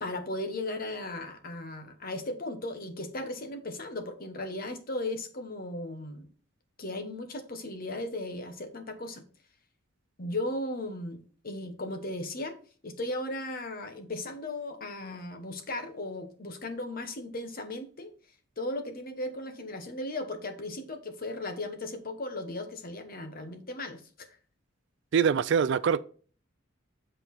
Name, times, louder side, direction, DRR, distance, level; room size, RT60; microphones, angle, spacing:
voice 1, 0.0-6.3 6.8-9.2 10.2-12.5 12.8-18.1 18.6-24.3, left 1 dB, 45° left, 1.0 m, -36 dB
voice 2, 25.1-26.0, right 7 dB, 60° right, 0.4 m, -24 dB
8.2 x 4.5 x 4.2 m
head